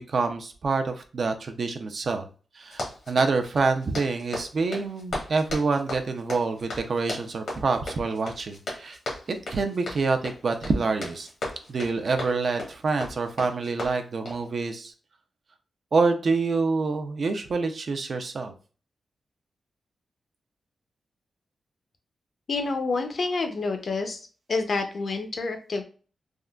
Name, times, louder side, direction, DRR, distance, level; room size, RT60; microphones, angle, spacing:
voice 1, 0.0-2.3 2.5-9.0 9.5-11.3 11.7-14.9 15.9-18.5, right 4 dB, 50° right, 6 dB, 0.4 m, -26 dB
Run, 2.6-14.5, left 1 dB, 75° left, 1.1 m, -37 dB
voice 2, 22.5-24.2 24.5-25.8, left 3 dB, 50° left, 5 dB, 0.5 m, -28 dB
3.6 x 2.1 x 2.2 m, 0.37 s
wide cardioid pair, 135°, 0 cm